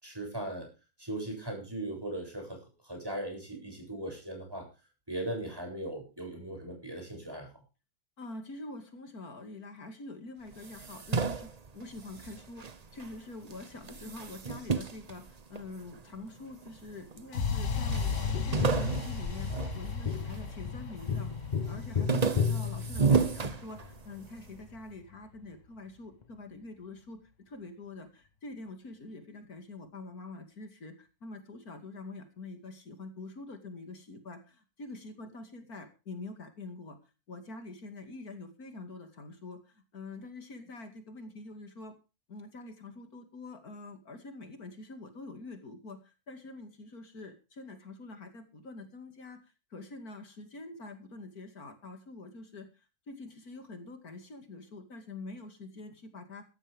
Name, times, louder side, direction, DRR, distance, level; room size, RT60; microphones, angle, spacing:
voice 1, 0.0-0.7 1.0-2.6 2.8-4.7 5.1-7.5, right 1 dB, 15° right, 2 dB, 7.5 m, -38 dB
voice 2, 8.2-12.7 12.9-21.3 21.6-37.0 37.3-41.9 42.3-49.4 49.7-56.4, left 2 dB, 80° left, 6 dB, 2.9 m, -45 dB
sound 1, 10.5-13.2 13.5-16.0 16.6-17.3 17.5-17.6 17.9-20.5 20.9-21.3 21.7-24.3, right 5 dB, 35° right, 0.8 m, -32 dB
sound 2, 17.3-25.3, left 5 dB, 55° left, 1.9 m, -36 dB
Tap, 18.3-23.6 26.2-26.3, left 6 dB, 35° left, 0.8 m, -34 dB
16.5 x 13.5 x 3.6 m, 0.32 s
omnidirectional pair, 1.6 m